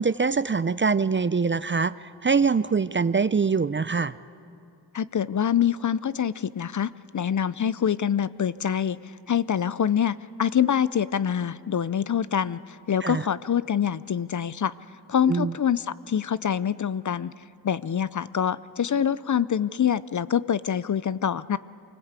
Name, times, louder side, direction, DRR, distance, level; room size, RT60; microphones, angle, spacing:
voice 1, 0.0-1.9 2.2-4.1 13.0-13.2 15.3-15.5, right 5 dB, 30° right, 16 dB, 0.5 m, -23 dB
voice 2, 4.9-9.0 9.3-14.7 15.1-17.3 17.6-21.6, left 8 dB, 45° left, 17 dB, 0.6 m, -25 dB
25.0 x 19.5 x 8.2 m, 2.5 s
cardioid pair, 65°, 43 cm